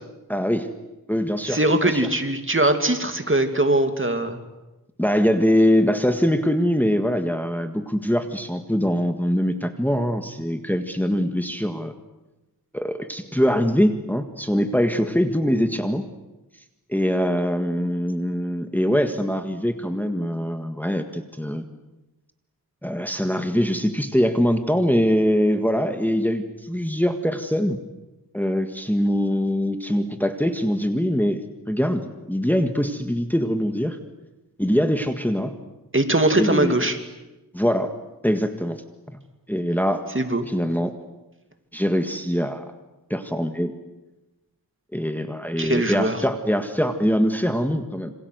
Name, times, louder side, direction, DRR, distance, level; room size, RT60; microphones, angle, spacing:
voice 1, 0.3-0.7 1.1-2.0 5.0-11.9 12.7-16.0 16.9-21.6 22.8-27.8 28.3-34.0 34.6-35.5 36.4-36.8 37.5-37.9 38.2-38.8 39.5-40.1 40.5-40.9 41.7-42.6 43.1-43.7 44.9-48.1, equal, 5° left, 6 dB, 1.8 m, -23 dB
voice 2, 1.5-4.4 35.9-37.0 40.1-40.4 45.6-46.2, right 1 dB, 35° right, 7 dB, 2.7 m, -21 dB
27.5 x 26.0 x 8.1 m, 1.0 s
wide cardioid pair, 70°, 37 cm